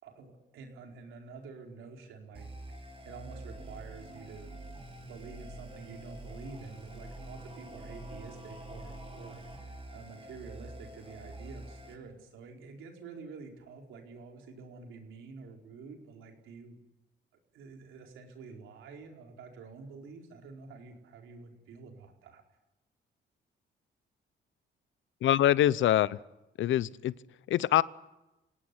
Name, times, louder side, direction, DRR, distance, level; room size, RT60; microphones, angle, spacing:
voice 1, 0.0-2.5 2.8-4.5 5.0-16.8 17.5-22.4, right 4 dB, 85° right, 2 dB, 4.6 m, -48 dB
sound 1, 2.3-11.9, right 1 dB, 30° right, 6.3 m, -46 dB
voice 2, 25.2-26.2 26.6-27.1 27.5-27.8, left 12 dB, 75° left, 19 dB, 0.8 m, -24 dB
26.0 x 18.0 x 9.9 m, 0.98 s
cardioid pair, 90°, 20 cm